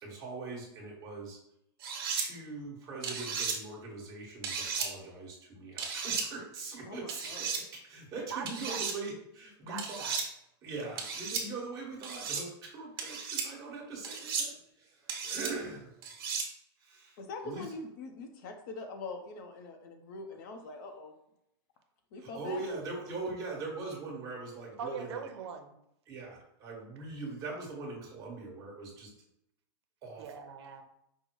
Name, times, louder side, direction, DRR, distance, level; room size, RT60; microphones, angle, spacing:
voice 1, 0.0-1.4 2.1-10.1 10.6-15.9 16.8-17.2 17.4-17.6 22.2-25.2 26.1-29.1 30.0-30.2, right 3 dB, 25° right, -3 dB, 1.3 m, -41 dB
sound 1, 1.8-2.3 3.0-3.6 4.4-4.9 5.8-6.3 7.1-7.6 8.5-8.9 9.8-10.2 11.0-11.4 12.0-12.4 13.0-13.5 14.0-14.5 15.1-15.5 16.0-16.5, right 5 dB, 55° right, 1.2 m, -34 dB
voice 2, 6.8-7.4 17.2-21.1 22.1-22.8, left 3 dB, 45° left, 5 dB, 0.7 m, -43 dB
voice 3, 8.3-8.8 9.7-10.2 24.8-25.7 30.2-30.8, right 6 dB, 90° right, 6 dB, 0.7 m, -41 dB
5.4 x 2.1 x 4.6 m, 0.80 s
supercardioid pair, 170°, 14 cm